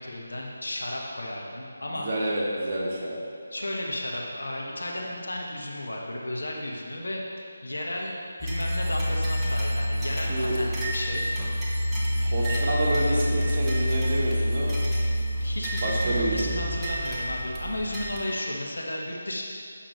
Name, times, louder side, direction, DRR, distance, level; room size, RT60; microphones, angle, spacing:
voice 1, 0.0-2.1 3.5-7.2 7.6-11.3 12.4-12.6 15.4-19.4, left 1 dB, 75° left, -2 dB, 1.2 m, -33 dB
voice 2, 1.9-3.2 10.3-10.6 12.2-14.7 15.8-16.6, right 1 dB, 40° right, -5 dB, 1.5 m, -28 dB
sound 1, 8.4-18.2, equal, 10° right, 0.9 m, -27 dB
8.3 x 5.8 x 3.2 m, 2.4 s
figure-of-eight pair, 155°, 0 cm